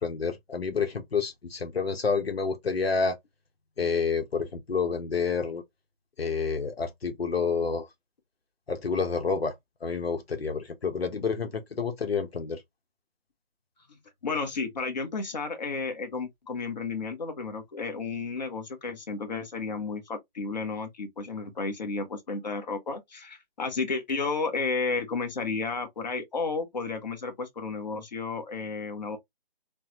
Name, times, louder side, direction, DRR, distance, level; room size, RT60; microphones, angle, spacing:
voice 1, 0.0-3.2 3.8-5.6 6.2-7.9 8.7-9.5 9.8-12.6, left 5 dB, 85° left, 1.0 m, -29 dB
voice 2, 14.2-29.2, left 4 dB, 45° left, 1.1 m, -32 dB
3.4 x 2.2 x 2.8 m
figure-of-eight pair, 165°, 30 cm